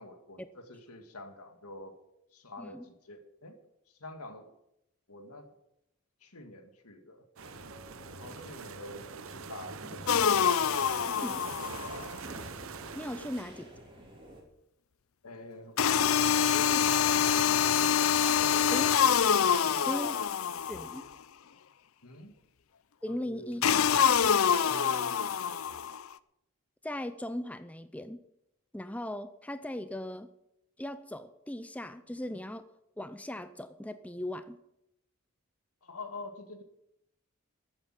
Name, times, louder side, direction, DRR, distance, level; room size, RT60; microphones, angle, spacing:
voice 1, 0.0-2.0 2.3-3.6 3.9-4.5 5.1-5.5 6.2-7.3 8.1-12.2 13.2-13.4 15.2-15.8 16.3-19.8 22.0-22.3 23.1-23.6 24.6-25.2 35.8-36.6, left 2 dB, 90° left, 6 dB, 2.1 m, -46 dB
voice 2, 2.6-2.9 11.2-11.3 12.9-13.7 18.7-18.9 19.9-20.2 20.6-21.0 23.0-23.6 26.8-28.2 28.7-30.3 30.8-32.7 33.0-34.6, left 1 dB, 5° left, 11 dB, 0.5 m, -38 dB
sound 1, 7.4-14.4, equal, 25° right, 3.2 m, -50 dB
sound 2, 7.4-13.4, right 5 dB, 70° right, 0.8 m, -44 dB
sound 3, 10.1-12.0 15.8-21.0 23.6-26.0, left 8 dB, 70° left, 0.5 m, -26 dB
14.0 x 8.7 x 7.5 m, 0.82 s
head